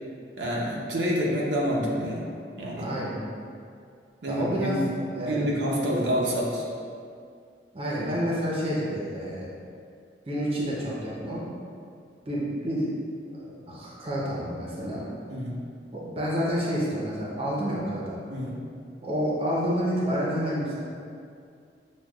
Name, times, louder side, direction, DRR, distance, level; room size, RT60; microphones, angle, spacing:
voice 1, 0.4-2.2 2.6-2.9 4.2-4.8 5.3-6.6 15.3-15.6 18.3-18.6, equal, 80° right, -4 dB, 0.6 m, -27 dB
voice 2, 2.7-3.2 4.3-4.8 5.1-5.5 5.8-6.0 7.7-9.5 10.3-11.4 12.3-12.9 13.3-15.1 15.9-18.2 19.0-20.8, equal, 35° right, -6 dB, 0.6 m, -29 dB
6.2 x 2.2 x 2.3 m, 2.3 s
head